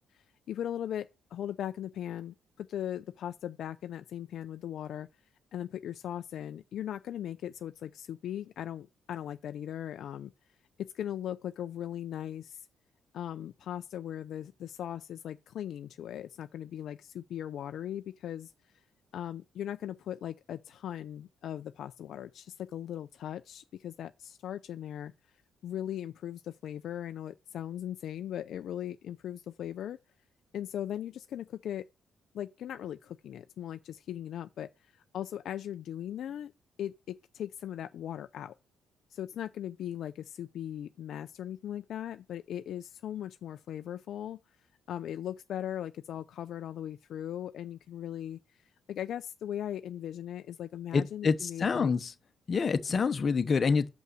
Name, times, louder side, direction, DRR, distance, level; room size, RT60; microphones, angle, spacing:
voice 1, 0.1-5.1 5.5-10.3 10.8-12.7 13.1-18.5 19.1-25.1 25.6-30.0 30.5-31.9 32.3-36.5 36.8-38.5 39.1-44.4 44.9-51.9, left 10 dB, 70° left, 0.5 m, -39 dB
voice 2, 50.9-52.1 52.5-53.9, left 5 dB, 40° left, 1.0 m, -27 dB
6.3 x 5.5 x 6.1 m
cardioid pair, 90°, 0 cm